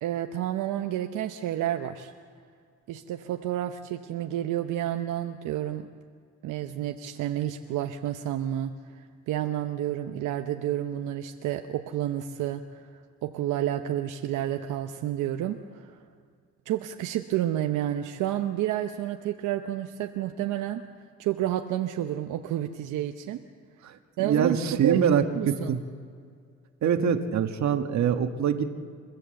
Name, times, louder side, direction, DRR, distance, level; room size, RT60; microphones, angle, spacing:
voice 1, 0.0-2.1 2.9-5.9 6.4-12.9 13.2-15.9 16.7-20.8 21.2-23.4 24.2-24.6 24.8-25.0 25.3-25.8, right 12 dB, 85° right, 5 dB, 0.9 m, -30 dB
voice 2, 23.8-25.8 26.8-28.7, right 7 dB, 65° right, 6 dB, 1.6 m, -24 dB
29.0 x 14.0 x 7.8 m, 2.1 s
cardioid pair, 90°, 30 cm